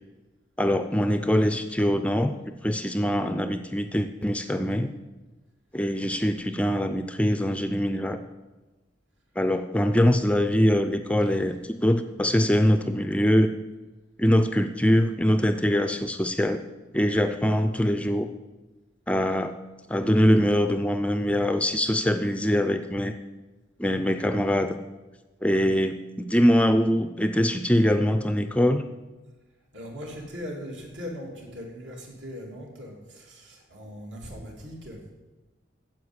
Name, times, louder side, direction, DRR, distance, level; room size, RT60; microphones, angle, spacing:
voice 1, 0.6-4.9 5.7-8.2 9.4-13.5 14.2-16.6 16.9-18.3 19.1-19.5 19.9-23.1 23.8-24.7 25.4-28.8, equal, 5° left, 8 dB, 0.4 m, -23 dB
voice 2, 29.7-35.0, equal, 70° right, -1 dB, 3.0 m, -39 dB
9.6 x 7.6 x 8.0 m, 1.2 s
head